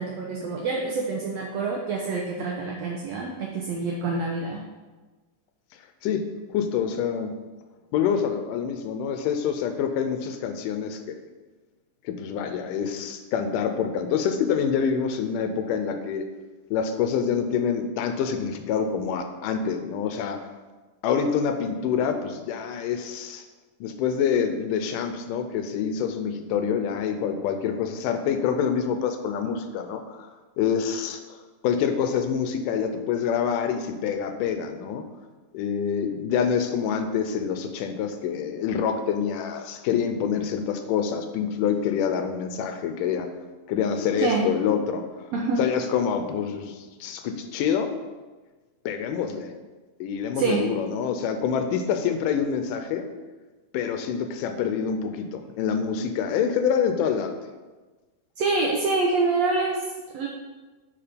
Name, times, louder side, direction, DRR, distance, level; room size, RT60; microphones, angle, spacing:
voice 1, 0.0-4.6 44.2-44.4 45.3-45.6 50.3-50.6 58.4-60.3, right 3 dB, 75° right, -1 dB, 1.6 m, -26 dB
voice 2, 6.5-7.4 7.9-11.2 12.1-16.2 16.7-20.4 21.0-23.4 23.8-30.3 30.6-31.4 31.6-35.0 35.5-43.3 43.7-45.3 45.6-47.9 48.9-49.5 50.0-53.1 53.7-57.3, left 7 dB, 85° left, 7 dB, 2.2 m, -26 dB
8.7 x 4.2 x 5.1 m, 1.3 s
omnidirectional pair, 3.8 m